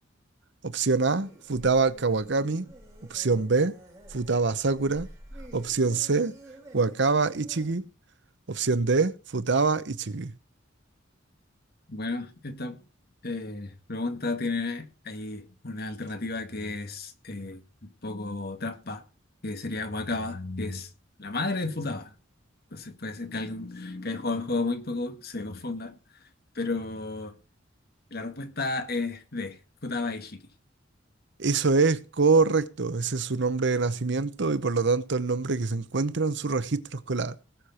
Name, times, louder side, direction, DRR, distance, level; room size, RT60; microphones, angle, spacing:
voice 1, 0.6-2.7 3.1-3.7 4.1-5.1 5.5-6.3 6.7-7.9 8.5-10.3 31.4-37.4, right 4 dB, 65° right, 0.9 m, -25 dB
sound 1, 1.2-7.7, right 1 dB, 20° right, 5.3 m, -49 dB
voice 2, 11.9-12.8 13.2-19.0 19.4-20.9 21.2-22.1 22.7-25.9 26.6-27.4 28.1-30.4, left 3 dB, 55° left, 2.0 m, -33 dB
19.5 x 6.6 x 4.3 m
head